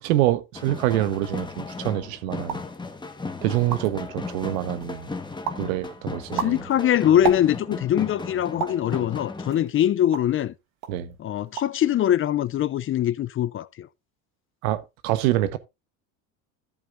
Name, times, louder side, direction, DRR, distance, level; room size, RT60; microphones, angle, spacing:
voice 1, 0.0-2.6 3.4-5.1 5.6-6.6 10.9-11.1 14.6-15.6, right 14 dB, 80° right, 1.2 m, -25 dB
sound 1, 0.5-9.7, left 3 dB, 10° left, 1.4 m, -36 dB
sound 2, 2.4-2.8 3.3-3.4 3.5-4.1 4.6-5.0 5.4-5.7 6.1-7.8 8.6-8.9 9.5-10.4 10.8-11.0 11.3-11.8 12.1-12.6, right 8 dB, 60° right, 2.0 m, -32 dB
voice 2, 6.3-10.5 11.2-13.9, left 11 dB, 30° left, 0.5 m, -22 dB
13.5 x 7.8 x 2.6 m
supercardioid pair, 100°, 41 cm